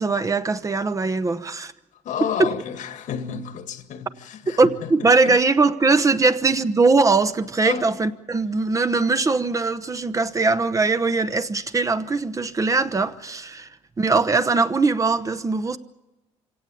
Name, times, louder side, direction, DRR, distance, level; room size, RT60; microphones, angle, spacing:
voice 1, 0.0-1.7 2.4-2.5 4.6-13.7 14.0-15.8, right 3 dB, 25° right, 0.9 m, -21 dB
voice 2, 1.9-5.4 6.2-6.3 7.6-8.0, left 8 dB, 70° left, 2.0 m, -32 dB
25.0 x 17.5 x 8.6 m
cardioid pair, 105°, 13 cm